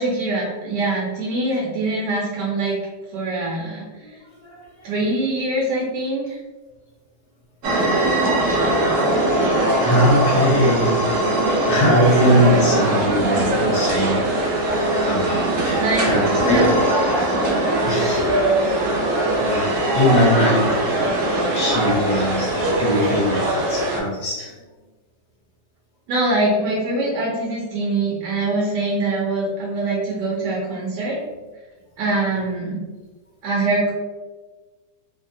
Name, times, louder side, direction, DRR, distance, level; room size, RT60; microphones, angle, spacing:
voice 1, 0.0-2.8 3.1-3.9 4.8-6.4 15.8-16.1 16.4-16.7 26.1-31.2 32.0-32.8 33.4-33.9, right 2 dB, 70° right, -5 dB, 1.2 m, -23 dB
voice 2, 4.0-4.9 8.0-8.1 9.8-11.0 11.7-16.7 17.1-17.4 17.8-18.9 19.4-21.1 21.5-24.5 31.3-31.4, equal, 60° left, -6 dB, 1.4 m, -22 dB
sound 1, 7.6-24.0, right 1 dB, 85° right, 0.7 m, -20 dB
3.3 x 2.2 x 2.6 m, 1.3 s
omnidirectional pair, 2.0 m